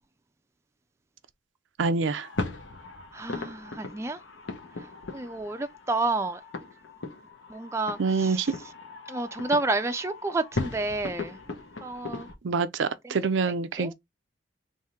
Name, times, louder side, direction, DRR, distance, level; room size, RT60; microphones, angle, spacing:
voice 1, 1.8-2.3 8.0-8.5 12.4-13.9, right 4 dB, 75° right, 0.5 m, -26 dB
sound 1, 2.1-12.3, left 3 dB, 80° left, 1.0 m, -38 dB
voice 2, 3.1-4.2 4.8-4.9 5.1-6.4 7.5-8.5 9.1-11.4 11.8-12.3 13.0-13.2 13.8-13.9, right 2 dB, 15° right, 0.4 m, -30 dB
3.5 x 2.6 x 4.3 m
head